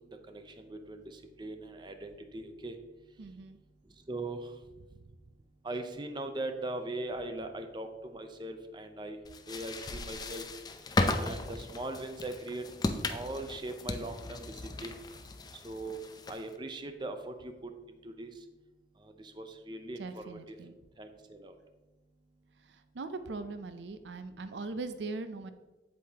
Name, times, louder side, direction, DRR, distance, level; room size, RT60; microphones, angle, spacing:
voice 1, 0.3-2.7 4.1-4.4 5.6-9.2 9.5-10.4 11.2-12.6 13.1-14.4 14.8-15.0 15.6-16.0 16.3-17.7 18.0-18.3 19.4-20.6 21.0-21.1 21.4-21.5, right 2 dB, 25° right, 7 dB, 0.6 m, -40 dB
voice 2, 3.2-3.6 20.0-20.7 22.7-25.5, right 3 dB, 75° right, 10 dB, 0.5 m, -40 dB
sound 1, 9.2-16.6, left 2 dB, 25° left, 0.5 m, -36 dB
8.2 x 7.6 x 2.8 m, 1.1 s
head